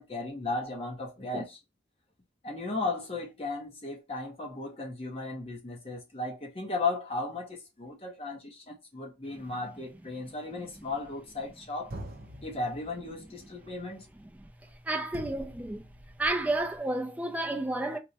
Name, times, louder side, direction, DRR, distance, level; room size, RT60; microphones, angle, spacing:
voice 1, 0.0-1.6 2.4-11.9 12.4-14.1, left 3 dB, 30° left, 0.8 m, -35 dB
sound 1, 10.6-11.5 11.9-16.8, right 1 dB, 55° right, 0.6 m, -47 dB
voice 2, 14.2-15.9 16.2-18.0, right 2 dB, 10° right, 0.3 m, -32 dB
4.3 x 2.1 x 2.7 m
head